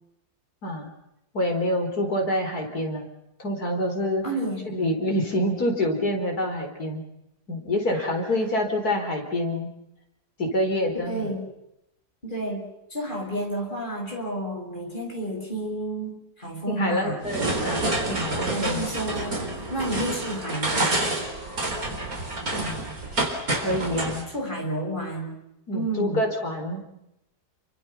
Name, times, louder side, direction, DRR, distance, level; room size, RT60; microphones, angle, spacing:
voice 1, 1.3-3.0 3.4-4.3 4.7-7.0 7.5-9.7 10.4-11.4 16.7-18.9 22.5-22.8 23.6-24.3 25.7-26.8, left 1 dB, 65° left, 3 dB, 5.0 m, -27 dB
voice 2, 4.2-4.6 7.9-8.1 11.0-11.5 12.2-17.2 18.5-21.0 24.3-25.3 25.7-26.2, right 1 dB, 30° left, 2 dB, 6.5 m, -31 dB
sound 1, 17.2-24.2, right 2 dB, 60° right, 4.7 m, -28 dB
28.5 x 24.5 x 5.8 m, 0.85 s
omnidirectional pair, 1.7 m